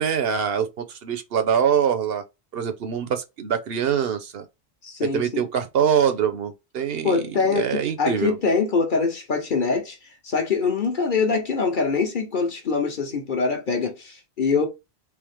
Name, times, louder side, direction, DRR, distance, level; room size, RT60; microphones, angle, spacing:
voice 1, 0.0-2.2 2.5-4.5 5.0-8.4, right 8 dB, 65° right, 0.9 m, -24 dB
voice 2, 4.8-5.4 7.0-10.0 10.2-14.7, left 5 dB, 50° left, 1.1 m, -24 dB
3.5 x 3.3 x 3.3 m
omnidirectional pair, 1.1 m